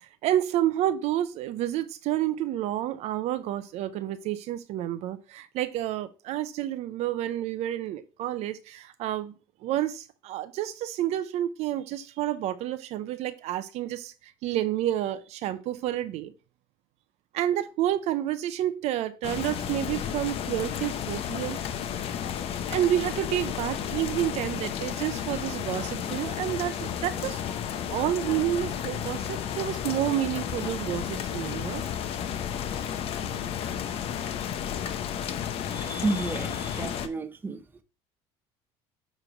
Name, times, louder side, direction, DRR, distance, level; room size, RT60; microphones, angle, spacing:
voice 1, 0.0-9.3 9.6-16.3 17.3-21.6 22.7-27.4 27.9-31.8, right 12 dB, 60° right, 0.6 m, -29 dB
sound 1, 19.2-37.1, left 9 dB, 50° left, 0.7 m, -32 dB
voice 2, 35.7-37.6, right 3 dB, 15° right, 0.7 m, -31 dB
7.6 x 3.2 x 4.9 m
cardioid pair, 115°, 13 cm